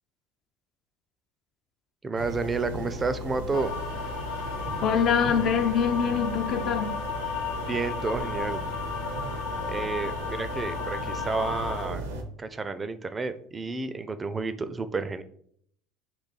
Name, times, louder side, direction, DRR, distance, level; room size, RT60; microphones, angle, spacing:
voice 1, 2.0-3.7 7.6-8.6 9.7-12.0 12.4-15.2, right 4 dB, 25° right, 0.4 m, -31 dB
sound 1, 2.1-12.2, equal, 85° right, 0.6 m, -36 dB
sound 2, 3.5-11.9, left 5 dB, 80° left, 1.1 m, -34 dB
voice 2, 4.8-7.0, left 7 dB, 50° left, 0.5 m, -24 dB
3.2 x 3.1 x 3.9 m
hypercardioid pair, 70°, 0 cm